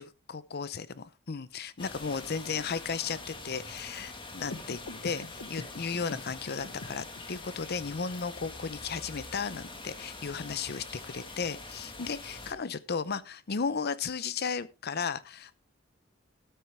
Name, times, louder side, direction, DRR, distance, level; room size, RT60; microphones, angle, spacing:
voice 1, 0.0-15.6, left 5 dB, 50° left, 0.7 m, -35 dB
sound 1, 1.8-12.5, left 3 dB, 25° left, 1.7 m, -44 dB
sound 2, 4.4-7.4, left 2 dB, 90° left, 1.3 m, -45 dB
13.0 x 9.1 x 3.5 m
head